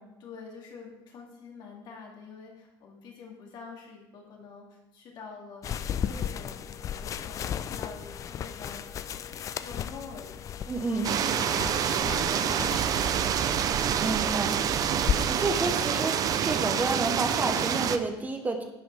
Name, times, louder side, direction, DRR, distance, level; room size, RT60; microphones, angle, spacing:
voice 1, 0.2-8.8 9.1-9.3 9.6-10.4 10.9-11.5, left 4 dB, 55° left, -1 dB, 2.5 m, -46 dB
sound 1, 5.6-15.1, left 9 dB, 35° left, 0.4 m, -35 dB
voice 2, 10.6-11.1 14.0-14.6 15.3-16.1 16.4-18.6, right 3 dB, 20° right, 4 dB, 0.9 m, -29 dB
sound 2, 11.0-18.0, right 8 dB, 40° right, 0.6 m, -27 dB
11.0 x 7.6 x 3.4 m, 1.0 s
cardioid pair, 135°, 9 cm